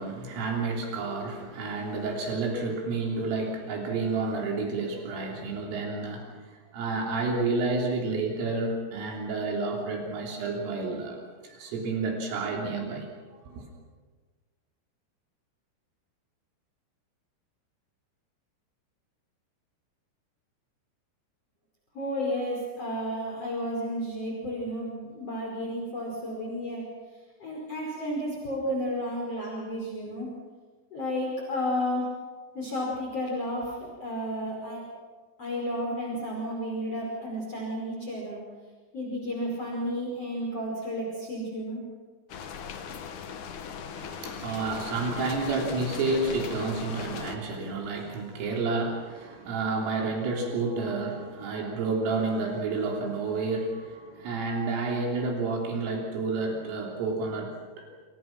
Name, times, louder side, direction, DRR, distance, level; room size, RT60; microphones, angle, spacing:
voice 1, 0.0-6.4 6.7-13.1 13.5-13.6 43.9-57.9, right 3 dB, 75° right, 0 dB, 5.9 m, -30 dB
voice 2, 21.9-26.8 27.4-30.3 30.9-32.1 32.5-34.8 35.4-38.4 38.9-41.8, equal, 30° left, -2 dB, 5.9 m, -32 dB
sound 1, 42.3-47.4, left 7 dB, 65° left, 1.9 m, -39 dB
28.5 x 27.5 x 6.0 m, 1.4 s
omnidirectional pair, 5.9 m